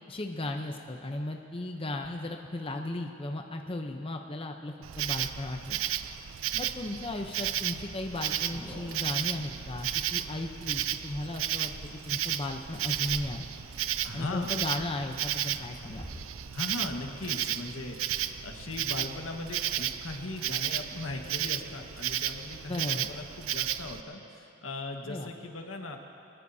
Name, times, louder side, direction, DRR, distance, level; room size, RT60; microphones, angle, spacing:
voice 1, 0.1-5.8 6.6-11.7 12.1-13.5 14.1-16.1 22.7-23.1 25.0-25.3, left 1 dB, 25° left, 3 dB, 0.7 m, -36 dB
Insect, 4.8-24.0, right 11 dB, 80° right, 0.5 m, -33 dB
sound 1, 7.4-22.1, equal, 5° left, 3.6 m, -50 dB
voice 2, 14.0-14.6 16.5-26.0, left 2 dB, 85° left, 2 dB, 1.5 m, -39 dB
23.5 x 20.5 x 2.8 m, 2.8 s
head